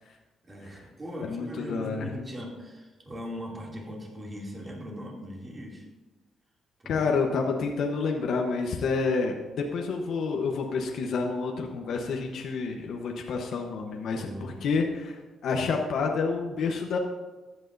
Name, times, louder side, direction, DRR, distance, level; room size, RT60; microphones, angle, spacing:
voice 1, 0.0-5.9 6.8-7.0 7.4-7.5 14.1-14.6, equal, 25° right, -2 dB, 2.8 m, -40 dB
voice 2, 1.2-2.1 6.9-17.0, left 4 dB, 70° left, 1 dB, 1.1 m, -29 dB
14.0 x 9.3 x 2.7 m, 1.2 s
cardioid pair, 90°, 0 cm